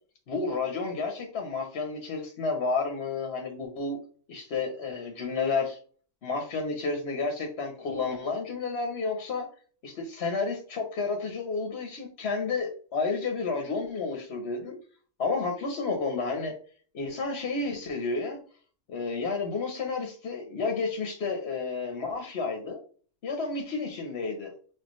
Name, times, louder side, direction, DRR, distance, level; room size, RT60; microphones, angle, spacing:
voice 1, 0.3-4.0 4.3-5.8 6.2-9.5 9.8-14.8 15.2-16.5 16.9-18.4 18.9-22.8 23.2-24.5, left 4 dB, 60° left, 3 dB, 1.0 m, -31 dB
6.3 x 2.4 x 3.0 m, 0.42 s
omnidirectional pair, 1.3 m